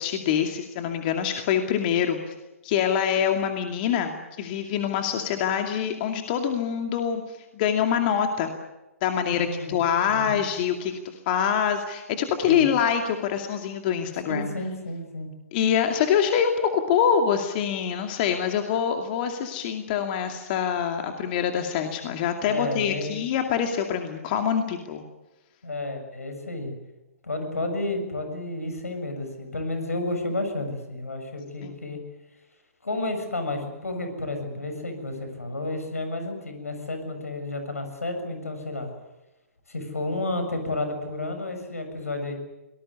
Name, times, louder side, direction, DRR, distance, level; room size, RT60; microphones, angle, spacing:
voice 1, 0.0-2.3 2.6-8.5 9.0-10.9 11.3-14.5 15.5-25.0 31.6-32.0, left 8 dB, 40° left, 5 dB, 2.4 m, -25 dB
voice 2, 9.3-9.8 10.1-10.4 12.5-12.7 14.3-15.3 22.5-23.1 25.6-26.7 27.2-32.0 32.8-38.9 39.7-42.3, left 2 dB, 80° left, 6 dB, 6.9 m, -31 dB
25.0 x 19.5 x 9.7 m, 1.0 s
figure-of-eight pair, 125°, 8 cm